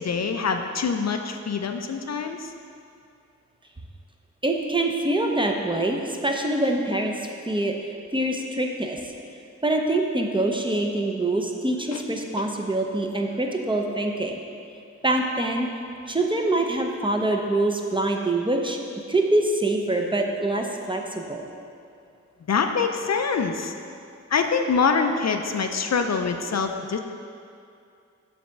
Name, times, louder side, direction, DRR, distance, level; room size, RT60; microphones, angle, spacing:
voice 1, 0.0-2.5 11.9-12.0 22.5-23.7 24.3-27.0, left 5 dB, 60° left, 6 dB, 0.5 m, -25 dB
voice 2, 4.4-7.7 8.1-9.0 9.6-14.4 15.0-15.7 16.1-18.8 19.1-21.5, right 2 dB, 15° right, 1 dB, 0.6 m, -25 dB
7.1 x 3.5 x 6.3 m, 2.5 s
wide cardioid pair, 80°, 30 cm